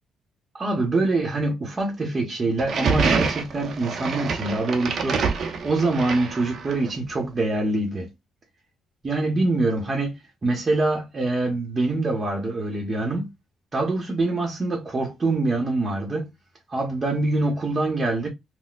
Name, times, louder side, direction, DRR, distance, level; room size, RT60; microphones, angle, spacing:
voice 1, 0.5-8.1 9.0-13.3 13.7-16.3 16.7-18.3, right 2 dB, 35° right, 1.0 m, -25 dB
sound 1, 2.6-6.9, right 5 dB, 60° right, 0.8 m, -26 dB
4.1 x 2.2 x 2.4 m
cardioid pair, 90°, 0 cm